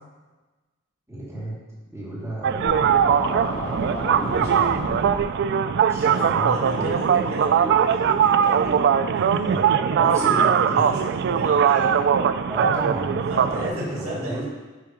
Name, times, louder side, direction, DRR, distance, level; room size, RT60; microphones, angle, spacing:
voice 1, 1.1-1.5 1.9-2.9 4.2-4.7 5.9-6.9 10.0-10.8 12.5-14.5, right 1 dB, 15° right, -8 dB, 2.4 m, -32 dB
sound 1, 2.4-13.7, right 7 dB, 55° right, 0.3 m, -20 dB
Scratching (performance technique), 2.6-5.2, equal, 40° left, 2.3 m, -31 dB
voice 2, 3.8-4.8 6.0-6.2 6.5-10.9 11.3-11.9 13.3-14.5, equal, 85° right, -4 dB, 2.1 m, -35 dB
10.5 x 3.6 x 5.0 m, 1.2 s
head